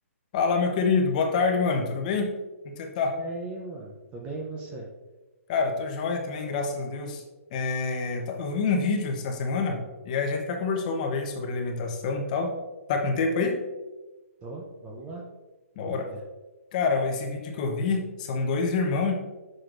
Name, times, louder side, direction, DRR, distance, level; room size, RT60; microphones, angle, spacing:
voice 1, 0.3-2.3 2.6-3.2 5.5-7.2 7.5-12.5 12.9-13.6 15.8-16.1 16.7-19.1, left 4 dB, 30° left, 3 dB, 0.9 m, -27 dB
voice 2, 3.1-4.9 14.4-15.3 15.9-16.2, right 3 dB, 15° right, 0 dB, 0.6 m, -38 dB
7.7 x 6.4 x 2.5 m, 1.1 s
hypercardioid pair, 165°, 8 cm